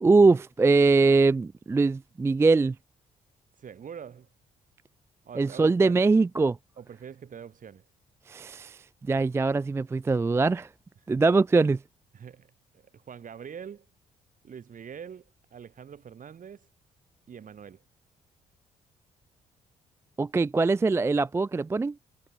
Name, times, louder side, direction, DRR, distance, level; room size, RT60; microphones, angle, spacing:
voice 1, 0.0-2.7 5.4-6.6 8.3-8.8 9.1-10.7 11.1-11.8 20.2-21.9, right 3 dB, 15° right, 0.3 m, -22 dB
voice 2, 3.6-4.3 5.2-6.0 6.8-7.8 12.1-13.9 14.4-16.7 17.3-17.8, right 7 dB, 50° right, 3.1 m, -44 dB
hypercardioid pair, 45°, 17 cm